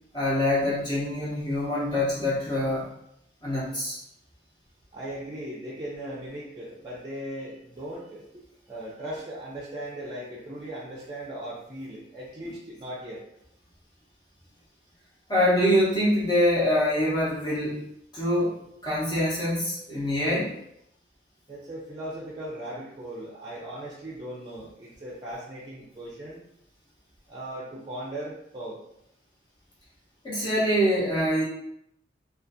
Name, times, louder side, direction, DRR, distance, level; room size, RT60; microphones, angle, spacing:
voice 1, 0.1-2.9 3.4-4.0 15.3-17.8 18.1-20.6 30.2-31.4, equal, 25° left, -7 dB, 0.7 m, -25 dB
voice 2, 4.9-8.4 8.7-13.2 21.5-26.4 27.3-28.8, right 1 dB, 25° right, -5 dB, 0.4 m, -38 dB
2.4 x 2.4 x 2.5 m, 0.77 s
head